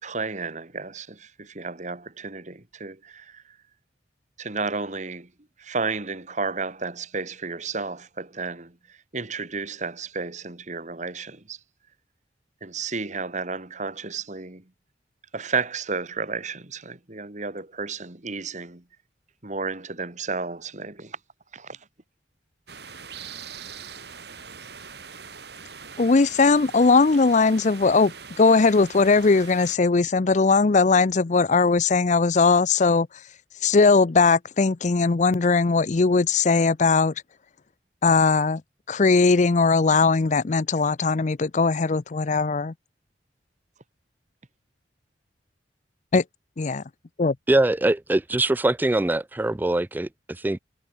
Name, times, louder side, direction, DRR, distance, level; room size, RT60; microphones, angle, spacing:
voice 1, 0.0-3.4 4.4-5.3 5.6-8.7 9.1-11.6 12.6-14.6 15.3-18.8 19.4-21.2 21.5-21.8, right 4 dB, 40° right, 2.0 m, -32 dB
sound 1, 22.7-29.8, right 6 dB, 65° right, 7.0 m, -42 dB
voice 2, 26.0-33.1 33.6-37.1 38.0-38.6 38.9-42.7 46.1-46.2 46.6-46.8 47.2-47.4, left 4 dB, 40° left, 0.5 m, -19 dB
voice 3, 47.5-50.6, right 2 dB, 10° right, 0.3 m, -23 dB
head